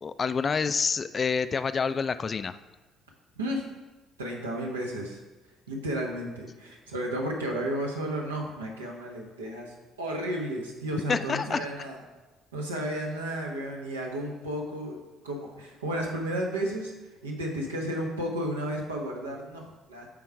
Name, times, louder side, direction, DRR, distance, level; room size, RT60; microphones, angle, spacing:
voice 1, 0.0-2.6 11.1-11.7, left 5 dB, 35° left, 13 dB, 0.3 m, -28 dB
voice 2, 4.2-5.2 5.7-12.0 12.5-15.0 15.2-16.9 17.2-20.1, right 1 dB, 80° right, -1 dB, 1.1 m, -33 dB
8.5 x 3.8 x 4.7 m, 1.2 s
figure-of-eight pair, 50°, 0 cm